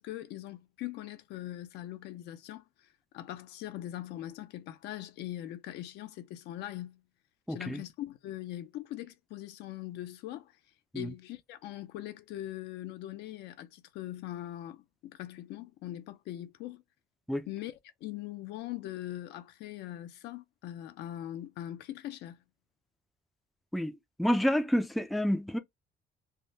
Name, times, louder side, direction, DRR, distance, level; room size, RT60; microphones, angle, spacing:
voice 1, 0.0-2.6 3.1-7.0 7.5-10.5 10.9-16.8 17.5-22.4, left 14 dB, 85° left, 0.6 m, -41 dB
voice 2, 7.5-7.8 10.9-11.1 17.3-17.5 23.7-25.6, equal, ahead, 0.4 m, -29 dB
3.5 x 2.1 x 2.6 m
cardioid pair, 110°, 17 cm